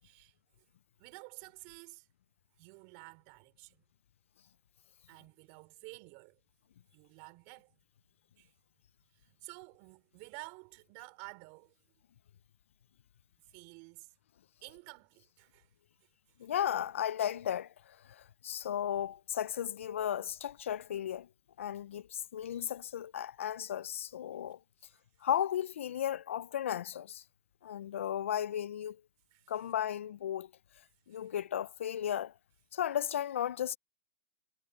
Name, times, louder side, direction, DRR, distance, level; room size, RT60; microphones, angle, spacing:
voice 1, 0.0-0.3 1.0-2.1 2.6-3.8 5.1-6.4 6.9-7.8 8.4-8.5 9.1-11.8 13.5-14.1 14.6-15.7 29.3-29.5 31.1-31.3, right 31 dB, 50° right, 4.4 m, -52 dB
voice 2, 16.4-21.3 21.6-24.6 25.2-27.2 27.6-29.0 29.5-30.5 31.1-32.3 32.7-33.8, left 10 dB, 90° left, 0.5 m, -35 dB
hypercardioid pair, 135°, 7 cm